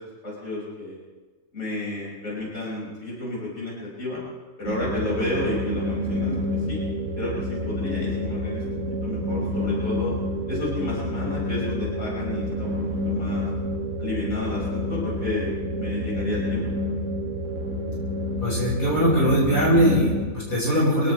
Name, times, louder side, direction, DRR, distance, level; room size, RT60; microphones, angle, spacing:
voice 1, 0.2-1.0 1.5-4.2 4.6-6.8 7.2-10.1 10.5-12.7 13.0-13.5 14.0-16.6, left 2 dB, 60° left, -6 dB, 5.8 m, -31 dB
sound 1, 4.6-20.2, left 1 dB, 65° right, 2.1 m, -28 dB
voice 2, 18.4-21.1, equal, 90° left, -6 dB, 6.0 m, -21 dB
24.0 x 17.5 x 3.2 m, 1.3 s
omnidirectional pair, 1.4 m